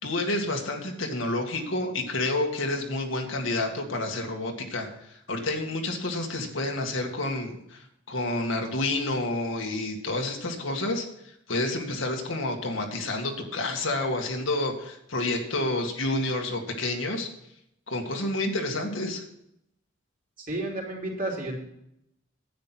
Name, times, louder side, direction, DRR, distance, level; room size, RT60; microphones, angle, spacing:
voice 1, 0.0-7.8 8.1-11.1 11.5-17.3 17.9-19.2, left 2 dB, 75° left, 2 dB, 2.0 m, -29 dB
voice 2, 20.5-21.6, right 1 dB, 45° right, -2 dB, 3.4 m, -31 dB
10.5 x 8.8 x 6.1 m, 0.78 s
head